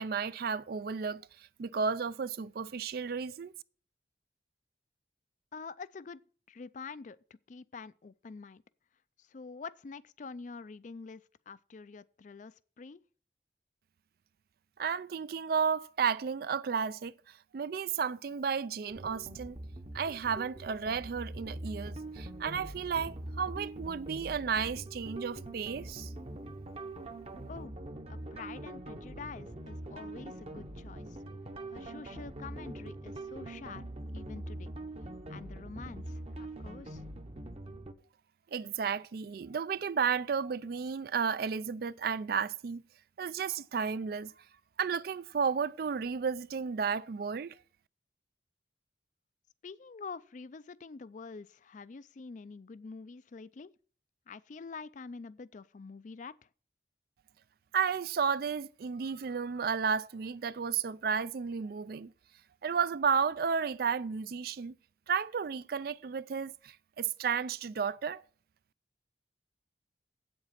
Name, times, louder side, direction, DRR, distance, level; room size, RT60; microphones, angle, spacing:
voice 1, 0.0-3.5 14.8-19.6 19.9-26.1 38.5-42.8 43.2-44.3 44.8-47.6 57.7-62.1 62.6-64.7 65.1-68.2, right 6 dB, 55° right, 0.4 m, -33 dB
voice 2, 5.5-6.2 6.5-7.2 7.5-8.6 9.2-13.0 27.5-27.7 28.1-31.2 31.7-33.8 34.1-34.7 35.3-37.1 49.6-53.7 54.3-56.4, left 4 dB, 45° left, 0.4 m, -46 dB
sound 1, 18.9-37.9, right 1 dB, 35° right, 0.8 m, -43 dB
8.4 x 7.8 x 5.8 m
head